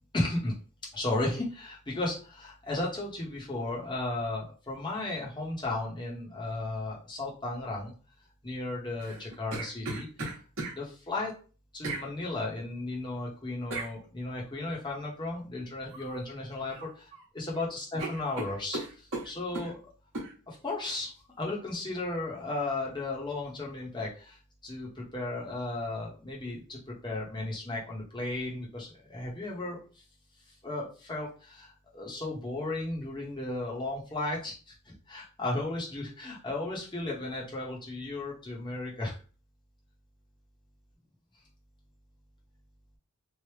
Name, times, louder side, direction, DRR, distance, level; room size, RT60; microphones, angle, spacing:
voice 1, 0.1-0.5 0.9-7.9 8.4-10.1 10.7-11.3 11.7-16.9 17.3-19.8 20.5-30.0 30.6-39.2, left 2 dB, 20° left, -3 dB, 0.7 m, -35 dB
sound 1, 9.0-10.8 11.8-12.1 13.7-13.9 15.9-16.2 16.5-17.2 17.5-17.6 18.0-19.7 20.1-20.3, right 2 dB, 55° right, 1.0 m, -37 dB
3.1 x 2.0 x 3.1 m, 0.37 s
head